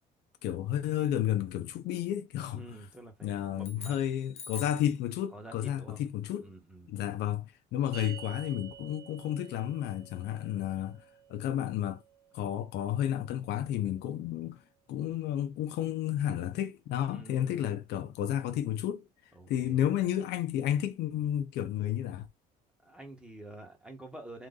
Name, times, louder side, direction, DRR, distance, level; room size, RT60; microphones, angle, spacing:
voice 1, 0.4-2.6 3.2-6.5 6.9-11.0 11.3-12.0 12.3-14.6 14.9-19.1 19.5-22.3, left 11 dB, 80° left, 0.8 m, -32 dB
voice 2, 2.5-4.2 5.3-6.0 6.4-6.9 17.0-17.8 19.3-19.8 22.8-24.5, right 2 dB, 5° right, 1.5 m, -48 dB
sound 1, 3.6-4.9, left 4 dB, 40° left, 0.8 m, -46 dB
sound 2, 7.9-14.5, right 9 dB, 75° right, 1.4 m, -52 dB
3.9 x 2.6 x 3.9 m
cardioid pair, 110°, 17 cm